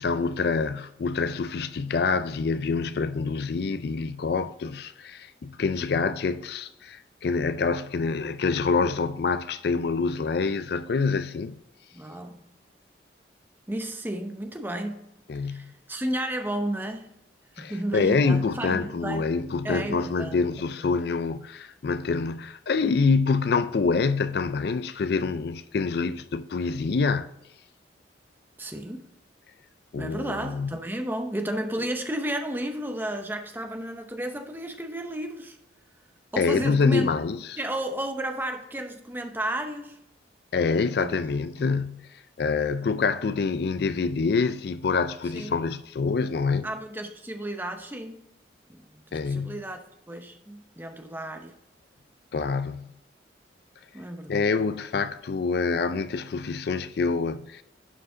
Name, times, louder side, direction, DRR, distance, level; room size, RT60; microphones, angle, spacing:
voice 1, 0.0-11.6 15.3-15.7 17.6-27.3 29.9-30.8 36.4-37.6 40.5-42.1 42.4-46.7 49.1-49.6 52.3-52.9 54.3-57.6, left 4 dB, 55° left, 0.4 m, -26 dB
voice 2, 11.9-12.4 13.7-15.0 15.4-17.1 17.6-19.3 19.6-20.4 28.6-29.1 29.9-35.6 36.3-37.1 37.6-40.0 41.0-41.2 45.3-45.6 46.6-48.2 48.7-51.5 53.9-54.7, right 1 dB, 10° right, 0.7 m, -33 dB
11.0 x 4.8 x 3.8 m
head